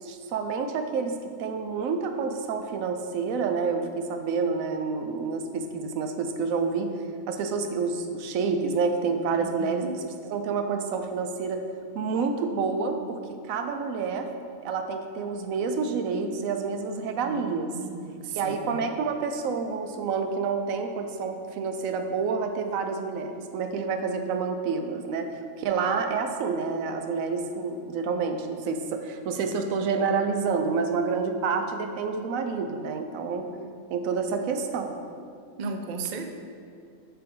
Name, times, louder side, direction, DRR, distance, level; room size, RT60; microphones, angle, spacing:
voice 1, 0.0-6.9 7.3-9.9 10.3-11.6 11.9-13.2 13.4-14.3 14.6-17.7 18.3-25.3 25.6-33.5 33.9-35.0, right 5 dB, 90° right, 6 dB, 1.0 m, -28 dB
voice 2, 9.4-9.9 17.2-18.9 35.6-36.3, right 4 dB, 60° right, 5 dB, 0.5 m, -36 dB
6.7 x 5.2 x 3.8 m, 2.3 s
omnidirectional pair, 1.4 m